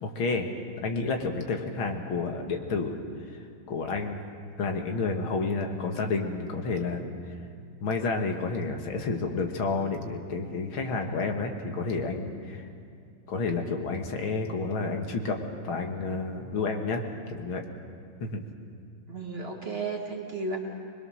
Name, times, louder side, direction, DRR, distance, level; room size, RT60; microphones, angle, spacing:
voice 1, 0.0-0.5 0.8-3.0 3.3-3.4 3.7-4.3 4.6-7.1 7.8-12.7 13.3-15.4 15.6-17.6 18.2-18.4, left 3 dB, 80° left, 3 dB, 2.4 m, -30 dB
voice 2, 19.1-20.6, right 3 dB, 30° right, 0 dB, 2.0 m, -33 dB
24.0 x 21.5 x 6.4 m, 2.3 s
omnidirectional pair, 2.2 m